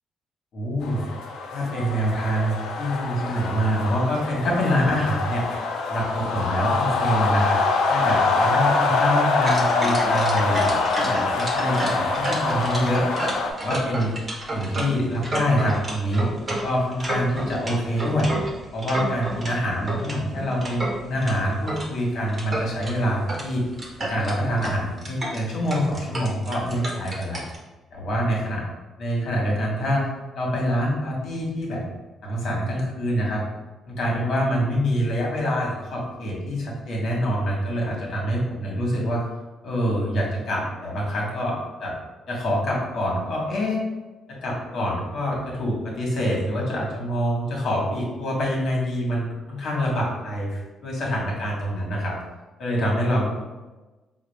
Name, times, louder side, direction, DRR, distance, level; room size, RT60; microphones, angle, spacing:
voice 1, 0.5-1.0 1.5-5.4 5.9-7.6 7.9-13.0 13.6-14.1 14.5-18.3 18.7-23.6 24.0-27.4 27.9-28.6 29.0-30.0 30.3-31.8 32.2-33.4 33.8-39.2 39.6-42.0 42.3-43.8 44.3-52.2 52.6-53.3, equal, 65° left, -3 dB, 1.4 m, -25 dB
sound 1, 0.8-13.5, left 3 dB, 85° left, 0.4 m, -24 dB
sound 2, 9.4-19.5 19.9-21.9 22.3-22.9 23.3-23.5 23.7-27.6, right 1 dB, 35° right, 1.0 m, -31 dB
4.2 x 2.4 x 3.4 m, 1.2 s
cardioid pair, 90°, 0 cm